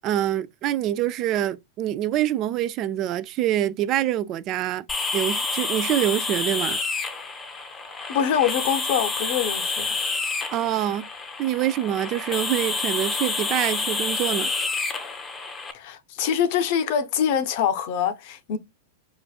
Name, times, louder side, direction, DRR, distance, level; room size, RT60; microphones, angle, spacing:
voice 1, 0.0-4.8 5.1-6.8 10.5-11.1 11.4-14.5, right 12 dB, 40° right, 0.3 m, -25 dB
sound 1, 4.9-15.7, left 3 dB, 20° left, 0.7 m, -28 dB
voice 2, 8.1-10.0 15.7-18.6, left 8 dB, 55° left, 0.6 m, -24 dB
4.9 x 2.5 x 2.3 m
hypercardioid pair, 105°, 0 cm